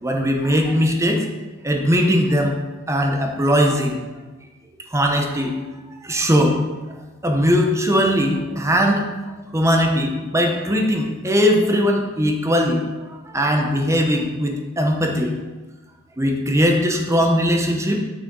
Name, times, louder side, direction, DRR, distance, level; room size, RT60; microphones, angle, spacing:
voice 1, 0.0-1.2 1.6-2.5 2.9-4.0 4.9-5.5 6.0-6.6 7.2-9.1 9.5-12.8 13.3-15.3 16.2-18.0, equal, 15° right, 2 dB, 0.7 m, -19 dB
6.8 x 5.8 x 3.9 m, 1.2 s
head